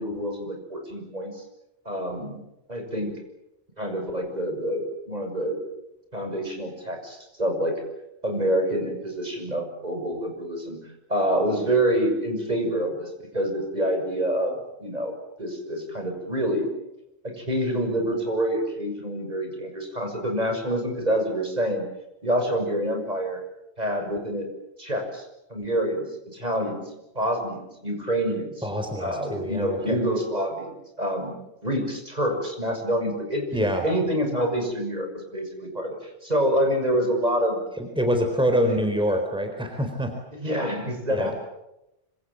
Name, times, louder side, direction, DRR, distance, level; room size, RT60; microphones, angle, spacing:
voice 1, 0.0-1.4 1.9-2.4 2.7-3.1 3.8-5.6 6.1-7.8 8.2-10.8 11.1-16.7 17.2-21.9 22.2-23.4 23.8-24.5 24.8-25.2 25.5-26.9 27.1-28.6 29.0-30.7 31.0-31.3 31.6-33.5 33.8-37.6 38.7-38.8 40.3-41.4, equal, 40° right, 3 dB, 7.0 m, -27 dB
voice 2, 28.6-30.0 33.5-33.8 37.8-40.1 41.1-41.3, equal, 5° right, 4 dB, 4.1 m, -25 dB
26.5 x 26.5 x 7.6 m, 0.89 s
omnidirectional pair, 1.1 m